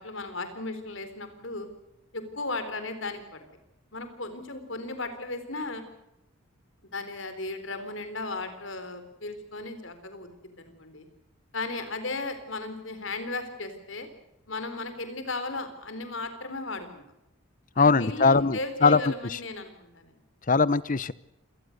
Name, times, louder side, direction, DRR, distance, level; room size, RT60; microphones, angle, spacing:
voice 1, 0.0-1.7 2.1-3.4 3.9-5.8 6.9-10.3 10.6-11.0 11.5-14.1 14.5-17.0 17.7-20.1, left 2 dB, 65° left, 9 dB, 4.2 m, -35 dB
voice 2, 17.8-19.0 20.5-21.1, left 4 dB, 40° left, 19 dB, 0.8 m, -21 dB
27.0 x 19.0 x 6.7 m, 0.90 s
head